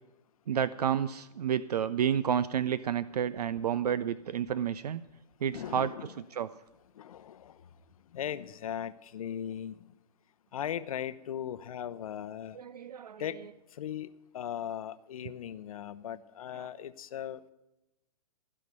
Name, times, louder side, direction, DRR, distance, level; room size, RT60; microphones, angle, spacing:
voice 1, 0.5-5.0 5.4-6.5 12.5-13.2, right 8 dB, 70° right, 17 dB, 0.5 m, -30 dB
voice 2, 5.5-6.1 7.0-7.6 8.1-9.8 10.5-12.6 13.2-13.5 13.8-14.1 14.3-17.5, left 10 dB, 60° left, 15 dB, 0.7 m, -38 dB
16.0 x 5.6 x 9.4 m, 0.95 s
figure-of-eight pair, 120°, 21 cm